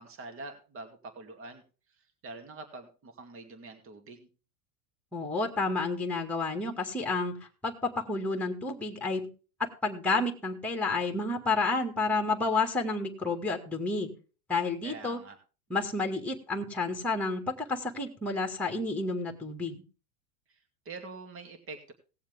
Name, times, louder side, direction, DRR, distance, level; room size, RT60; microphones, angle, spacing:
voice 1, 0.0-1.6 2.0-4.3 14.8-15.4 20.5-21.9, right 3 dB, 30° right, 5 dB, 2.4 m, -45 dB
voice 2, 5.1-9.3 9.6-14.1 14.5-15.2 15.7-19.8, left 3 dB, 5° left, 4 dB, 2.0 m, -30 dB
18.5 x 7.2 x 3.6 m, 0.35 s
hypercardioid pair, 115°, 42 cm